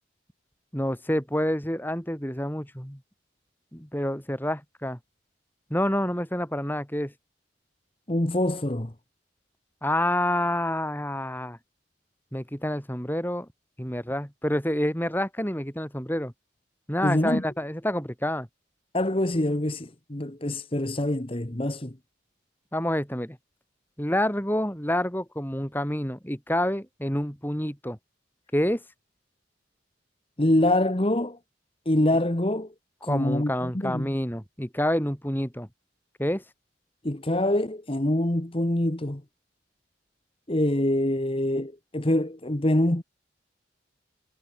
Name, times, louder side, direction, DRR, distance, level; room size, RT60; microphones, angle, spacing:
voice 1, 0.7-3.0 3.7-5.0 5.7-7.1 9.8-11.6 12.3-13.5 13.8-16.3 16.9-18.5 22.7-23.4 24.0-28.0 28.5-28.8 33.1-35.7 36.2-36.4, left 1 dB, 10° left, 5.2 m, -28 dB
voice 2, 8.1-8.9 17.0-17.4 18.9-22.0 30.4-31.4 31.8-32.7 33.0-34.1 37.0-39.2 40.5-43.0, left 1 dB, 30° left, 1.4 m, -25 dB
head